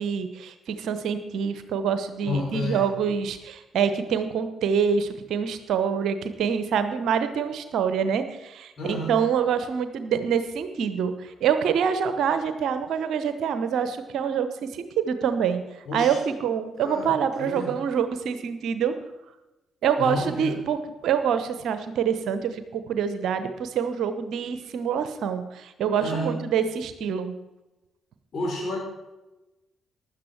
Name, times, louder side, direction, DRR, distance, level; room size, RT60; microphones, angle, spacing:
voice 1, 0.0-15.6 15.9-18.9 19.8-20.8 21.0-27.3, right 7 dB, 60° right, 10 dB, 1.0 m, -26 dB
voice 2, 2.3-2.8 8.8-9.2 15.9-16.2 16.8-17.1 17.4-17.7 20.0-20.5 26.0-26.4 28.3-28.8, left 2 dB, 50° left, -1 dB, 5.3 m, -30 dB
16.0 x 11.5 x 4.7 m, 1.0 s
figure-of-eight pair, 40°, 0 cm